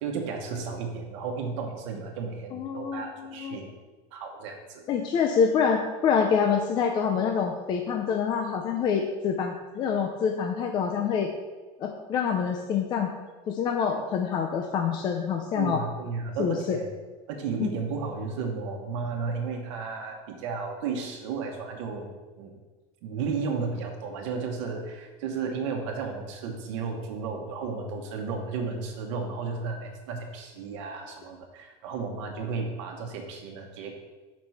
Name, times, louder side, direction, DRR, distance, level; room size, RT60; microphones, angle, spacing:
voice 1, 0.0-3.7 4.1-4.8 15.5-16.9 17.3-22.6 23.0-34.0, right 5 dB, 85° right, 2 dB, 1.1 m, -33 dB
voice 2, 2.5-3.6 4.9-11.3 11.8-13.1 13.5-15.8 16.4-16.8 17.6-17.8, left 6 dB, 30° left, 3 dB, 0.4 m, -26 dB
5.2 x 4.6 x 5.5 m, 1.2 s
cardioid pair, 165°, 15 cm